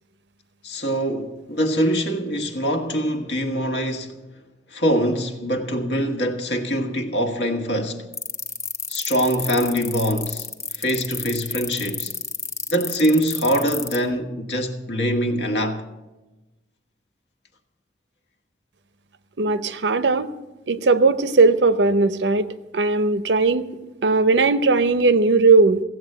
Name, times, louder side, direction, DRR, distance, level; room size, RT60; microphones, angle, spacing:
voice 1, 0.6-4.2 4.7-8.1 8.9-10.5 10.7-12.1 12.7-15.8, equal, 80° left, 1.5 m, -23 dB
sound 1, 8.1-14.0, left 4 dB, 15° left, 0.9 m, -29 dB
voice 2, 19.4-20.3 20.7-22.5 22.7-25.8, right 3 dB, 90° right, 0.7 m, -18 dB
16.5 x 7.9 x 7.8 m
head